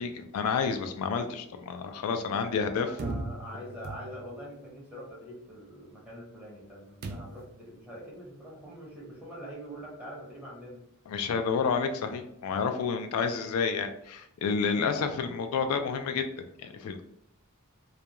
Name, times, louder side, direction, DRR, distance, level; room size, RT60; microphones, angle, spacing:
voice 1, 0.0-2.9 11.1-17.0, left 5 dB, 85° left, 7 dB, 0.3 m, -30 dB
voice 2, 2.3-10.8 12.5-12.8, equal, 5° right, -5 dB, 0.8 m, -44 dB
sound 1, 3.0-4.5 7.0-7.6, right 2 dB, 45° right, 0.3 m, -38 dB
2.4 x 2.2 x 2.8 m, 0.76 s
head